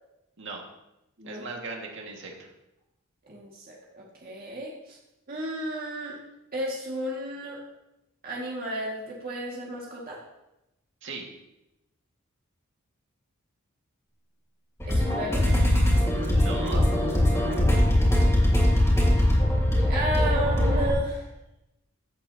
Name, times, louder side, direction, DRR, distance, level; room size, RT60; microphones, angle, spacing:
voice 1, 1.2-2.5 11.0-11.3 16.3-16.9, right 3 dB, 60° right, 0 dB, 2.0 m, -37 dB
voice 2, 3.3-5.0 5.3-6.2 6.5-7.6 8.2-10.2 14.9-15.5 17.6-18.5 19.9-21.3, right 1 dB, 45° right, -4 dB, 2.1 m, -33 dB
sound 1, 14.8-20.9, left 1 dB, 15° left, 3.1 m, -21 dB
15.0 x 8.2 x 2.9 m, 0.90 s
head